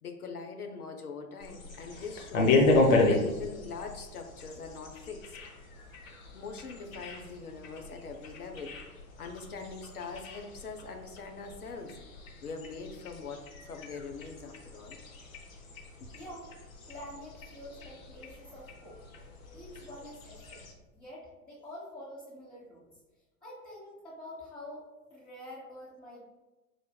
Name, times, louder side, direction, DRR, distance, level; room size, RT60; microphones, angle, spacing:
voice 1, 0.0-2.7 3.1-5.4 6.3-8.8 9.2-12.0 12.4-15.0 16.0-16.1, left 4 dB, 85° left, 4 dB, 0.6 m, -42 dB
sound 1, 1.4-20.7, left 2 dB, 65° left, 0.8 m, -33 dB
voice 2, 16.1-16.5 16.9-19.0 19.5-20.6 20.9-22.9 23.4-24.8 25.1-26.3, left 1 dB, 10° left, -9 dB, 1.0 m, -47 dB
4.8 x 2.5 x 2.2 m, 1.2 s
figure-of-eight pair, 95°, 44 cm